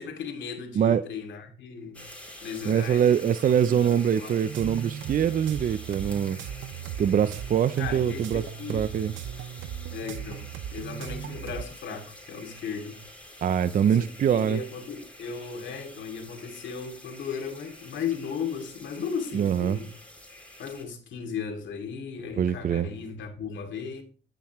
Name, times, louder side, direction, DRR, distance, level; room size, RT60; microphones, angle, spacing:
voice 1, 0.0-2.1 2.4-3.2 3.7-4.4 7.8-8.9 9.9-13.0 13.8-19.9 20.6-24.0, left 6 dB, 70° left, 2.7 m, -36 dB
sound 1, 1.9-20.8, left 1 dB, 5° left, 3.2 m, -47 dB
voice 2, 2.7-6.4 7.0-8.4 8.7-9.1 13.4-14.6 19.3-19.8 22.4-22.9, right 8 dB, 45° right, 0.5 m, -24 dB
sound 2, 4.4-11.7, right 10 dB, 75° right, 0.8 m, -37 dB
15.0 x 5.9 x 3.1 m
cardioid pair, 90°, 20 cm